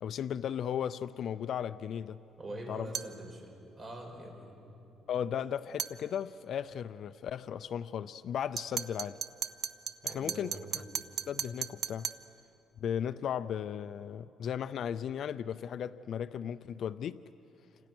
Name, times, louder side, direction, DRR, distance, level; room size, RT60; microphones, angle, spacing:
voice 1, 0.0-2.2 2.7-2.9 5.1-9.2 10.0-10.8 11.3-12.1 12.8-17.2, left 9 dB, 55° left, 14 dB, 0.5 m, -36 dB
voice 2, 2.4-4.6 10.0-10.7, right 1 dB, 25° right, 1 dB, 5.7 m, -44 dB
sound 1, 2.9-3.2 5.8-6.0 8.6-12.3, right 8 dB, 45° right, 0.8 m, -37 dB
29.5 x 27.0 x 6.2 m, 2.9 s
cardioid pair, 135°, 0 cm